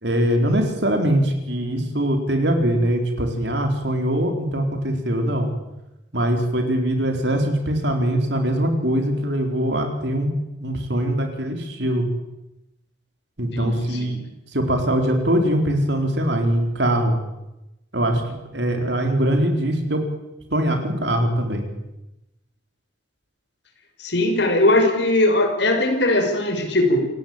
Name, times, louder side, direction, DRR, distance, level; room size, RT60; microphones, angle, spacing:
voice 1, 0.0-5.5 6.1-10.3 10.6-12.1 13.4-14.2 14.5-17.2 17.9-18.2 18.5-20.0 20.5-21.7, right 1 dB, 65° right, 5 dB, 4.2 m, -22 dB
voice 2, 13.5-14.2 24.0-27.1, left 1 dB, 70° left, 5 dB, 5.6 m, -20 dB
28.0 x 17.5 x 8.9 m, 0.95 s
head